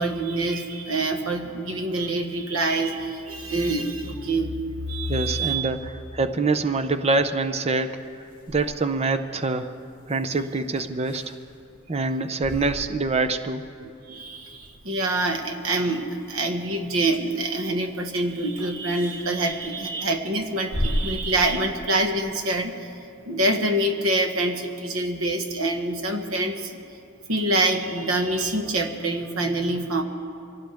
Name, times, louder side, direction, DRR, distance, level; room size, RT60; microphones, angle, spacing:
voice 1, 0.0-4.6 4.9-5.7 13.8-22.9 23.3-26.8 27.3-30.0, right 2 dB, 85° right, 4 dB, 1.5 m, -26 dB
sound 1, 4.6-22.2, equal, 25° left, 3.0 m, -39 dB
voice 2, 5.1-9.8 10.1-11.3 11.9-13.6, right 3 dB, 30° right, 9 dB, 0.6 m, -25 dB
24.5 x 16.5 x 3.5 m, 2.5 s
head